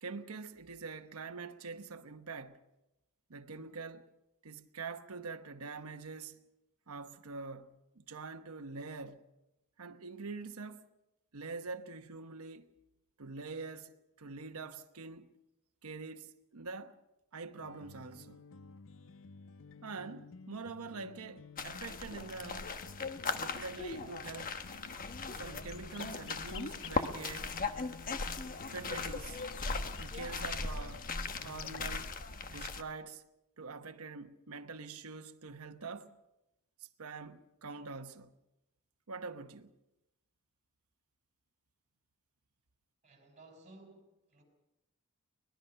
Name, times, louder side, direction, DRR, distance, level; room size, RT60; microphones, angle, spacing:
voice 1, 0.0-2.6 3.3-4.1 4.4-6.4 6.9-9.2 9.8-10.9 11.3-12.8 13.2-15.4 15.8-17.0 17.3-18.4 19.8-22.7 23.4-24.6 25.3-27.6 28.7-29.4 30.0-31.1 31.4-32.2 32.5-33.2 33.6-36.2 36.8-38.3 39.1-39.7, right 4 dB, 80° right, 1.1 m, -45 dB
sound 1, 17.6-32.1, left 5 dB, 60° left, 0.6 m, -52 dB
sound 2, 21.6-32.8, left 4 dB, 40° left, 1.2 m, -39 dB
voice 2, 43.0-44.4, right 2 dB, 35° right, 5.5 m, -57 dB
24.5 x 19.5 x 5.7 m
head